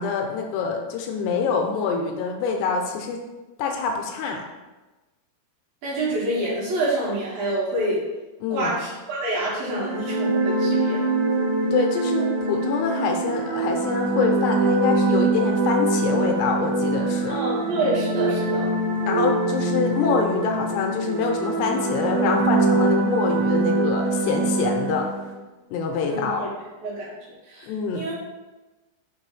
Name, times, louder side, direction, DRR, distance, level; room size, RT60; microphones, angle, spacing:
voice 1, 0.0-3.2 3.6-4.4 8.4-8.7 11.7-17.4 19.1-25.1 25.7-26.4 27.6-28.0, left 5 dB, 85° left, 2 dB, 2.6 m, -25 dB
voice 2, 5.8-8.0 8.5-11.0 17.3-18.7 26.1-26.5 26.8-27.1 27.5-28.1, right 1 dB, 60° right, -7 dB, 3.0 m, -27 dB
sound 1, 9.6-25.3, right 3 dB, 85° right, 3.2 m, -23 dB
6.7 x 3.1 x 4.6 m, 1.2 s
omnidirectional pair, 5.1 m